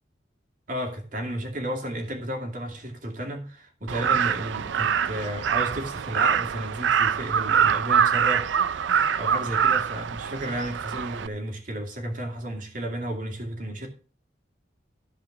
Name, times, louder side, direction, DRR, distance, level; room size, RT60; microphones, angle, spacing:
voice 1, 0.7-13.9, right 1 dB, 50° right, 2.5 m, -33 dB
Crow, 3.9-11.3, right 7 dB, 80° right, 0.4 m, -24 dB
14.5 x 5.0 x 5.8 m
head